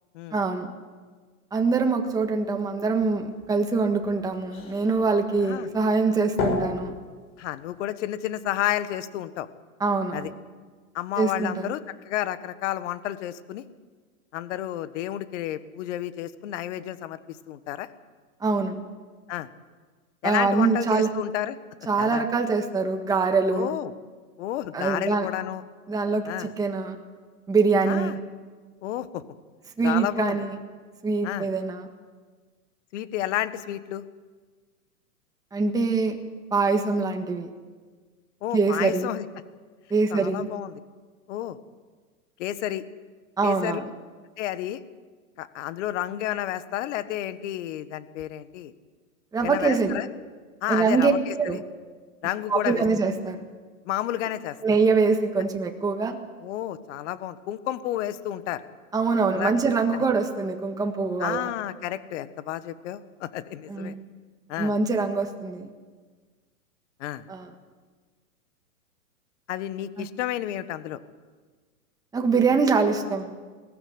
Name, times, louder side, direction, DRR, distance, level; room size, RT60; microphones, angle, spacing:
voice 1, 0.3-0.7 1.5-6.9 9.8-10.3 11.2-11.7 18.4-18.7 20.2-21.1 21.9-23.7 24.7-25.3 25.9-27.0 27.5-28.1 29.8-30.6 31.0-31.9 35.5-36.2 36.5-37.5 38.5-39.1 39.9-40.5 43.4-43.8 49.3-50.0 50.7-51.1 51.4-51.6 52.5-53.4 54.6-56.2 58.9-61.5 63.7-63.9 64.6-65.7 67.3-67.5 70.0-70.1 72.1-73.3, right 4 dB, 10° right, 4 dB, 1.6 m, -24 dB
sound 1, 2.0-7.8, left 3 dB, 75° left, 7.6 m, -35 dB
voice 2, 7.4-9.5 10.1-10.3 10.9-13.6 14.3-17.9 19.3-19.5 20.2-21.6 22.0-22.2 23.5-23.9 24.4-25.6 26.2-26.5 27.9-28.2 28.8-29.2 29.8-30.4 31.2-31.5 32.9-34.0 38.4-39.2 40.1-40.7 41.3-41.6 42.4-42.8 43.4-43.8 44.4-44.8 45.4-48.7 49.4-50.1 50.6-51.6 52.2-52.8 53.8-54.6 56.4-58.6 59.3-59.5 61.2-63.9 64.5-64.7 67.0-67.3 69.5-71.0, left 13 dB, 55° left, 13 dB, 1.5 m, -31 dB
20.0 x 15.0 x 9.8 m, 1.4 s
hypercardioid pair, 135°, 44 cm